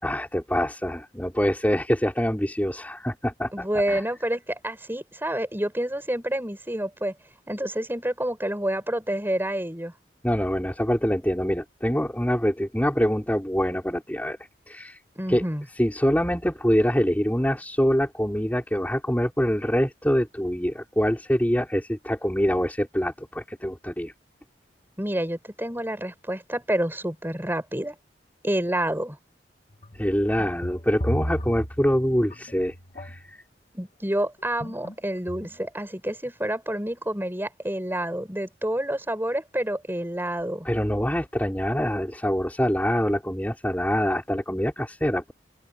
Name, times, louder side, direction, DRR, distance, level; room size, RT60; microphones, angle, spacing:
voice 1, 0.0-4.0 10.2-14.4 14.7-15.0 15.3-15.4 15.8-24.1 30.0-33.4 40.6-45.3, equal, 10° left, 4.7 m, -25 dB
voice 2, 3.5-7.1 7.5-9.9 15.2-15.7 25.0-28.0 28.4-29.2 33.7-40.7, right 1 dB, 15° right, 7.7 m, -28 dB
sound 1, 29.7-33.3 34.6-34.9 35.3-35.7, equal, 40° left, 2.8 m, -33 dB
open air
head